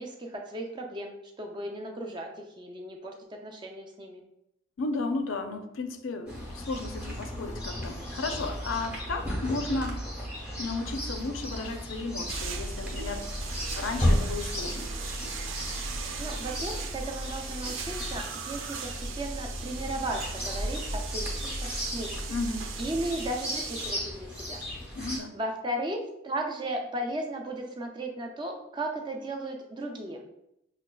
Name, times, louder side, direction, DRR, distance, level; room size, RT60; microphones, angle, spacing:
voice 1, 0.0-2.3 2.6-3.1 3.4-4.2 16.2-22.2 22.8-24.6 25.0-26.0 26.2-30.2, right 1 dB, 25° right, 2 dB, 0.4 m, -35 dB
voice 2, 4.8-10.0 10.6-13.3 13.7-14.9 22.3-22.7 24.9-25.4, left 3 dB, 85° left, 7 dB, 0.4 m, -34 dB
Chirp tweet, 6.3-25.2, equal, 5° right, 0.9 m, -35 dB
sound 1, 12.3-23.9, right 3 dB, 90° right, 0.4 m, -37 dB
5.9 x 2.2 x 2.3 m, 0.82 s
head